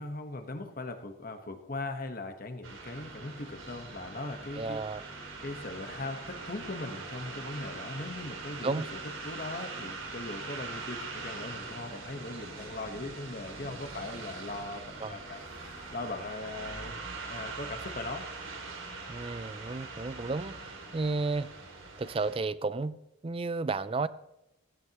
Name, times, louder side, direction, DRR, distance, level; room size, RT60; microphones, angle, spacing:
voice 1, 0.0-4.8 5.4-8.9 9.2-17.0 17.3-18.3, left 2 dB, 45° left, 6 dB, 1.2 m, -39 dB
sound 1, 2.6-22.4, right 3 dB, 75° right, 2.4 m, -42 dB
sound 2, 2.9-16.9, left 1 dB, 30° left, 0.8 m, -54 dB
voice 2, 4.6-5.0 8.6-8.9 15.0-15.2 19.1-21.5 22.0-23.0 23.2-24.1, right 3 dB, 25° right, 16 dB, 0.4 m, -32 dB
16.5 x 15.5 x 3.0 m, 0.87 s
head